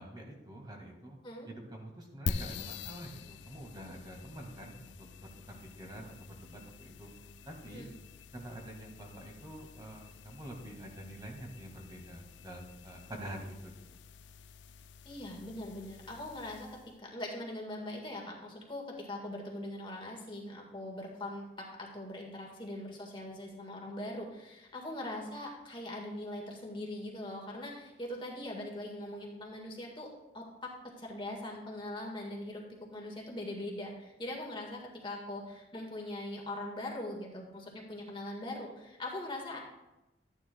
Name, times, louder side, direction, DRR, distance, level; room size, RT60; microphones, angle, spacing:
voice 1, 0.0-1.2 1.5-4.9 5.5-7.1 7.5-7.9 8.3-13.7, right 1 dB, 25° right, 1 dB, 1.8 m, -46 dB
sound 1, 2.3-17.0, left 5 dB, 80° left, 0.4 m, -46 dB
voice 2, 15.0-16.7 17.0-39.6, left 1 dB, 25° left, 0 dB, 1.7 m, -41 dB
13.5 x 9.9 x 2.3 m, 1.0 s
head